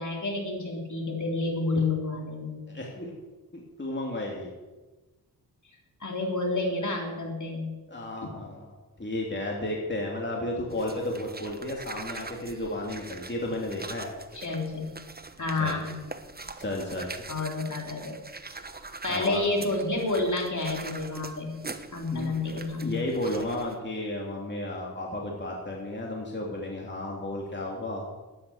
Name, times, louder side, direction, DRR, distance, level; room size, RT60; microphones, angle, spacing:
voice 1, 0.0-2.6 6.0-7.7 8.2-8.3 14.3-14.8 15.4-16.0 17.3-18.2 19.0-21.5 21.9-23.0, left 2 dB, 50° left, 0 dB, 3.7 m, -29 dB
voice 2, 2.7-3.1 3.5-4.5 7.9-8.7 9.0-14.1 15.6-15.8 16.6-17.1 19.1-19.4 22.1-22.3 22.8-28.0, left 1 dB, 30° left, -2 dB, 2.9 m, -33 dB
sound 1, 10.7-23.8, right 3 dB, 25° right, 1.1 m, -43 dB
12.5 x 10.5 x 7.3 m, 1.2 s
cardioid pair, 70°, 37 cm